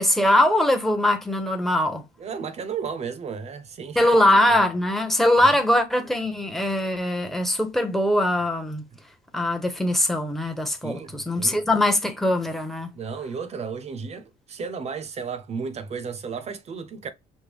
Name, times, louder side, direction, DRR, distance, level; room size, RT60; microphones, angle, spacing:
voice 1, 0.0-2.0 4.0-8.8 9.3-12.9, left 1 dB, ahead, 0.8 m, -21 dB
voice 2, 2.2-4.3 5.4-5.6 10.8-11.6 12.9-17.1, right 5 dB, 40° right, 0.7 m, -34 dB
5.2 x 2.1 x 3.4 m
cardioid pair, 110°, 17 cm